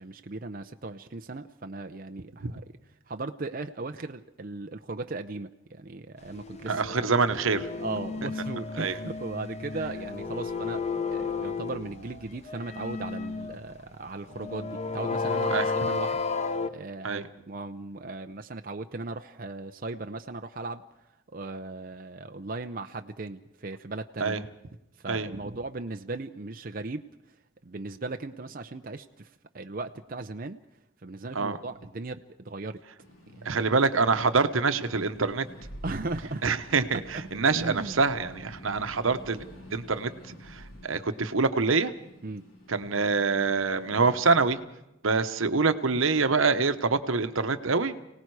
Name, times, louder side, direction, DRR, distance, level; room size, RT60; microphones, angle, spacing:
voice 1, 0.0-2.7 3.1-7.1 7.8-16.2 16.7-20.8 21.3-24.4 25.0-27.0 27.6-30.6 31.0-32.8 33.3-33.7 35.8-36.4 37.1-37.2 37.5-38.0 42.2-42.4, right 3 dB, 45° right, 6 dB, 0.6 m, -37 dB
sound 1, 6.3-13.7 14.3-16.7, left 4 dB, 30° left, 0.7 m, -33 dB
voice 2, 6.7-7.7 8.8-9.0 15.5-15.7 17.0-17.3 24.2-24.4 25.1-25.3 31.3-31.6 33.4-35.4 36.4-39.4 39.7-41.9 42.7-44.6 45.0-48.0, right 4 dB, 85° right, 10 dB, 1.0 m, -25 dB
sound 2, 33.0-44.5, equal, 85° left, 4.5 m, -48 dB
29.5 x 18.5 x 4.8 m, 0.87 s
head